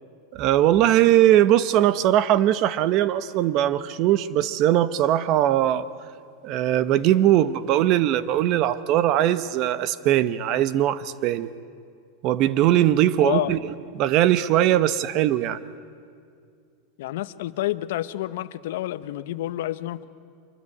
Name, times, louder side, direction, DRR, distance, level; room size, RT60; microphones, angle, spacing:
voice 1, 0.3-5.9 6.4-11.5 12.2-15.6, right 12 dB, 40° right, 15 dB, 0.8 m, -20 dB
voice 2, 13.2-13.6 17.0-20.1, left 15 dB, 70° left, 14 dB, 0.9 m, -29 dB
25.5 x 23.0 x 9.8 m, 2.3 s
supercardioid pair, 165°, 0 cm